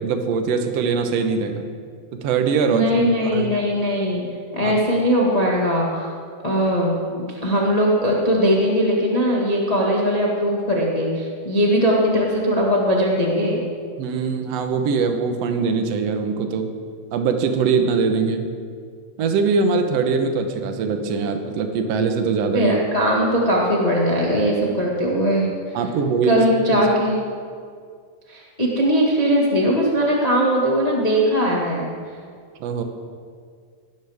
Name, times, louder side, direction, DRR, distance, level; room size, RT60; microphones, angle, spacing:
voice 1, 0.0-1.7 2.1-2.9 3.3-3.5 4.6-4.7 14.0-16.7 17.1-18.5 19.2-22.8 25.7-26.4 26.7-26.8 32.6-32.8, right 5 dB, 65° right, 5 dB, 1.7 m, -22 dB
voice 2, 2.7-4.2 4.5-6.1 6.4-13.6 22.5-25.8 26.3-27.2 28.3-31.9, equal, 50° left, -3 dB, 0.4 m, -20 dB
18.0 x 12.5 x 3.6 m, 2.1 s
omnidirectional pair, 4.1 m